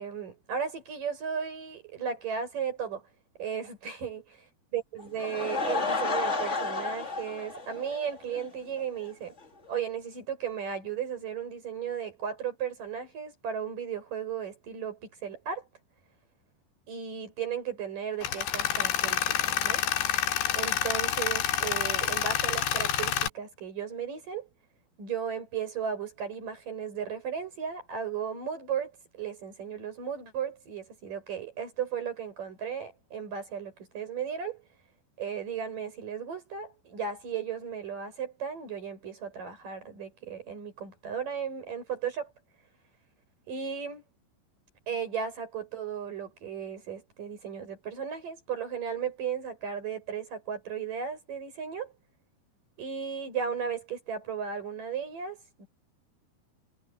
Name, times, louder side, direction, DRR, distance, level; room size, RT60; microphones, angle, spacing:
voice 1, 0.0-3.0 3.4-4.2 4.7-9.4 9.7-15.7 16.9-19.8 20.5-24.5 25.0-34.6 35.2-42.3 43.5-44.0 44.9-51.9 52.8-55.7, right 7 dB, 50° right, 8.2 m, -35 dB
Laughter / Crowd, 5.0-8.5 8.8-8.9 9.4-9.5 9.7-9.8, left 3 dB, 55° left, 0.8 m, -31 dB
Tools, 18.2-23.3, left 11 dB, 80° left, 4.4 m, -28 dB
omnidirectional pair, 4.9 m